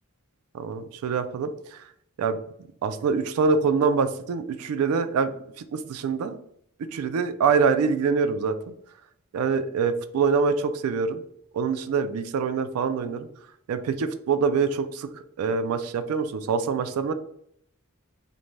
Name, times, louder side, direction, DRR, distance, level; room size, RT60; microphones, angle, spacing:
voice 1, 0.5-1.8 2.2-2.4 2.8-5.3 5.6-6.4 6.9-8.7 9.3-11.2 11.5-13.3 13.7-15.1 15.4-17.1, right 5 dB, 80° right, 11 dB, 0.3 m, -25 dB
2.5 x 2.1 x 3.1 m, 0.68 s
head